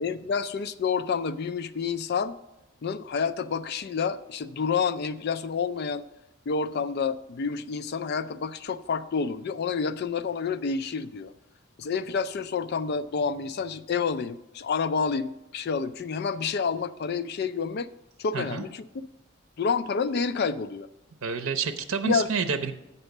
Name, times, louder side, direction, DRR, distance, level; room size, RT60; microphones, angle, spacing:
voice 1, 0.0-2.4 2.8-6.0 6.5-11.3 11.8-17.9 18.2-18.9 19.6-20.9 22.0-22.3, left 5 dB, 50° left, 12 dB, 0.4 m, -29 dB
voice 2, 18.3-18.6 21.2-22.7, right 5 dB, 85° right, 8 dB, 0.6 m, -28 dB
8.0 x 5.4 x 6.5 m, 0.92 s
head